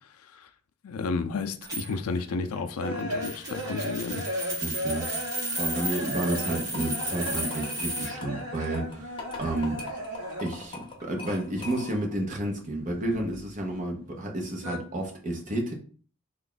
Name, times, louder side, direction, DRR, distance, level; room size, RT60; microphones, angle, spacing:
voice 1, 0.8-4.3, left 4 dB, 80° left, 0.4 m, -32 dB
sound 1, 1.6-8.1 9.3-10.0 11.0-11.2, right 1 dB, 15° right, 1.1 m, -34 dB
sound 2, 2.3-10.7 11.0-12.2 12.4-13.8 14.1-14.8, equal, 85° right, 0.9 m, -36 dB
voice 2, 4.6-5.1 5.6-9.8 10.4-15.7, right 1 dB, 35° right, 0.8 m, -31 dB
sound 3, 6.6-12.2, left 3 dB, 20° left, 0.7 m, -42 dB
3.4 x 2.4 x 3.8 m
head